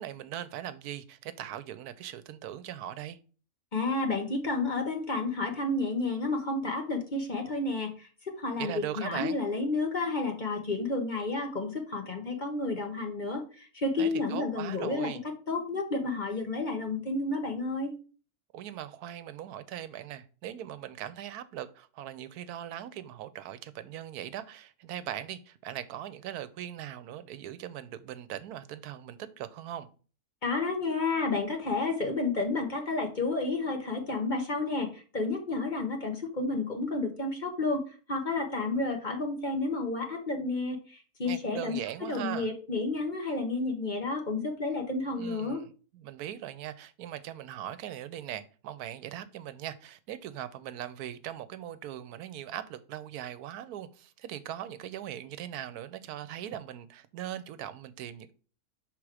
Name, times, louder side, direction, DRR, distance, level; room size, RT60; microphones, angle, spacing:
voice 1, 0.0-3.2 8.6-9.4 14.0-15.2 18.5-29.9 41.2-42.5 45.2-58.3, right 11 dB, 90° right, 1.1 m, -40 dB
voice 2, 3.7-15.1 15.5-17.9 30.4-41.8 42.1-45.6, left 3 dB, 35° left, 1.0 m, -31 dB
6.1 x 3.7 x 4.8 m
omnidirectional pair, 1.6 m